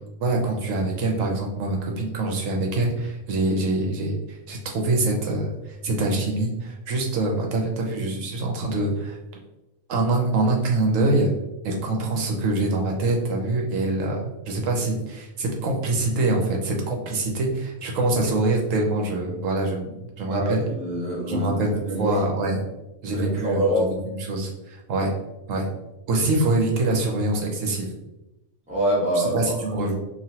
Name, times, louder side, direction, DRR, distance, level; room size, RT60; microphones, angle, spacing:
voice 1, 0.2-9.2 9.9-11.3 11.6-20.6 21.3-22.6 23.0-25.1 25.5-25.7 26.1-27.9 29.1-30.0, right 2 dB, 70° right, 0 dB, 1.0 m, -24 dB
voice 2, 20.2-22.1 23.1-23.9 28.7-29.4 29.7-29.8, right 1 dB, 5° right, -8 dB, 0.9 m, -25 dB
3.1 x 2.5 x 2.7 m, 0.96 s
omnidirectional pair, 1.4 m